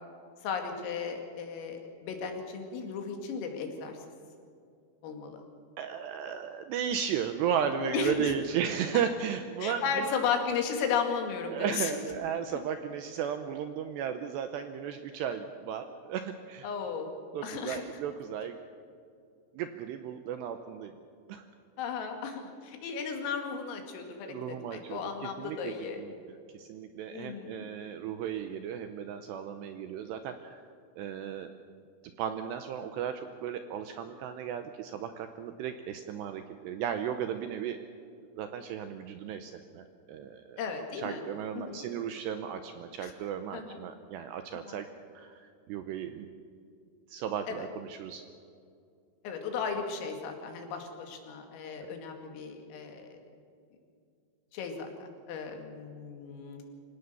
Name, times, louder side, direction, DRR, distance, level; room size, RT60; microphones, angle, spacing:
voice 1, 0.4-4.0 5.0-5.4 7.7-8.3 9.6-11.9 16.6-17.1 17.4-17.8 21.8-26.0 27.1-27.7 40.6-41.2 41.6-41.8 43.0-43.1 43.5-43.8 44.7-44.8 47.5-47.6 49.2-53.2 54.5-56.6, left 6 dB, 80° left, 4 dB, 5.0 m, -35 dB
voice 2, 5.8-10.1 11.5-16.7 17.3-18.6 19.5-20.9 21.3-21.5 24.2-30.6 31.0-31.5 32.2-37.8 38.4-40.6 41.0-44.9 45.1-46.3 47.1-48.2 51.8-51.9, right 8 dB, 80° right, 8 dB, 2.5 m, -35 dB
25.5 x 17.5 x 6.9 m, 2.4 s
omnidirectional pair, 5.8 m